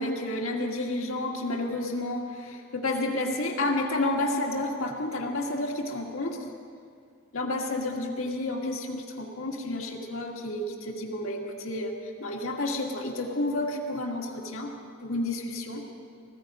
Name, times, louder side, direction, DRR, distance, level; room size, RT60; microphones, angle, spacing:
voice 1, 0.0-6.4 7.3-14.7 15.0-15.8, left 2 dB, 70° left, 0 dB, 2.0 m, -30 dB
18.5 x 15.5 x 4.9 m, 2.2 s
head